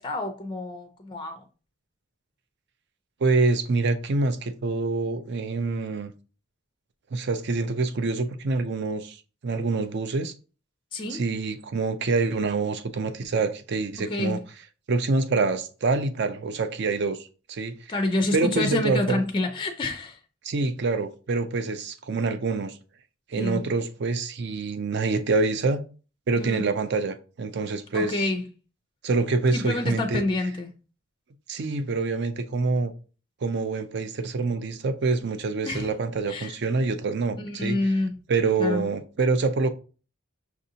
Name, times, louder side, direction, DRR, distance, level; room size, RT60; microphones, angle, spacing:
voice 1, 0.0-1.4 10.9-11.2 14.1-14.4 17.9-20.2 23.4-23.6 26.3-26.7 27.9-28.4 29.5-30.7 35.6-35.9 36.3-36.5 37.4-38.1 38.6-38.8, left 2 dB, 25° left, 0.4 m, -28 dB
voice 2, 3.2-6.1 7.1-9.2 9.4-10.3 11.1-14.4 14.9-17.7 18.3-19.2 20.4-22.8 23.3-25.8 26.3-28.3 29.0-30.2 31.5-32.9 33.4-37.8 38.3-39.7, right 3 dB, 60° right, 0.5 m, -26 dB
5.9 x 2.6 x 2.7 m
head